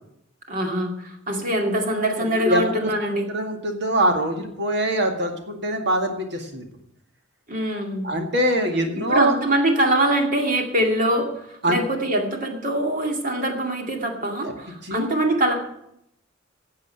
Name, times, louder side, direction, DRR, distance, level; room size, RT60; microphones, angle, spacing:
voice 1, 0.5-3.3 7.5-8.1 9.1-15.6, right 1 dB, 45° right, 3 dB, 2.4 m, -23 dB
voice 2, 2.4-2.9 3.3-6.7 8.0-9.3 11.6-11.8 14.4-14.5 14.8-15.1, right 1 dB, 60° right, 4 dB, 2.0 m, -23 dB
12.0 x 7.7 x 8.9 m, 0.79 s
head